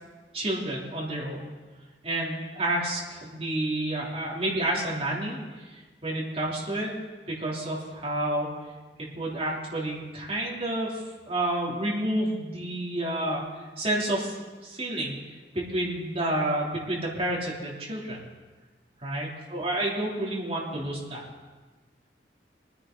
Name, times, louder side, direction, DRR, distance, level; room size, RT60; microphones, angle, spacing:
voice 1, 0.3-1.5 2.0-5.4 6.0-6.9 7.3-8.5 9.0-11.0 11.2-13.4 13.8-14.4 14.6-15.2 15.5-18.2 19.0-21.2, right 1 dB, 35° right, -4 dB, 3.2 m, -29 dB
22.5 x 10.0 x 3.9 m, 1.3 s
head